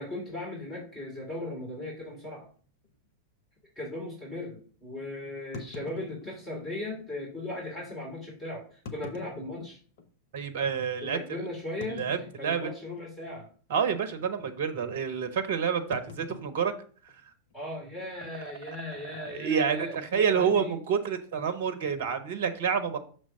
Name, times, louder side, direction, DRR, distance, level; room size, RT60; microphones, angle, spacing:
voice 1, 0.0-2.5 3.8-9.8 11.0-12.0 12.4-13.5 17.5-20.8, left 1 dB, 20° left, -3 dB, 2.6 m, -38 dB
sound 1, 0.8-1.0 1.7-1.8 2.1-2.2 2.8-3.0 5.5-6.7 7.6-7.7 8.7-10.1 10.6-10.7 11.8-12.9 13.2-13.5 13.8-14.1 15.9-17.5, left 4 dB, 55° left, 0.8 m, -45 dB
voice 2, 10.3-11.4 11.9-12.7 13.7-16.7 18.9-23.0, right 7 dB, 55° right, 9 dB, 0.7 m, -28 dB
6.2 x 3.3 x 5.4 m, 0.42 s
figure-of-eight pair, 90°, 0 cm